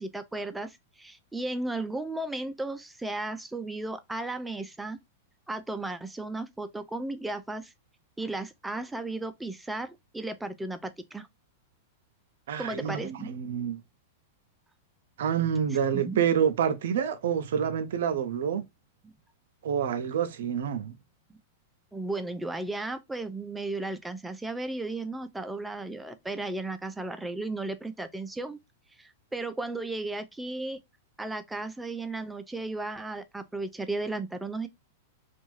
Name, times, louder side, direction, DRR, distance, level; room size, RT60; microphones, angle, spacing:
voice 1, 0.0-5.0 5.5-7.7 8.2-11.3 12.6-13.3 15.9-16.3 19.0-19.1 21.3-21.4 21.9-28.6 29.0-30.8 31.2-34.7, right 2 dB, 5° right, 0.4 m, -35 dB
voice 2, 12.5-13.8 15.2-18.6 19.6-20.9, right 8 dB, 75° right, 0.5 m, -27 dB
2.6 x 2.3 x 3.0 m
hypercardioid pair, 125°, 0 cm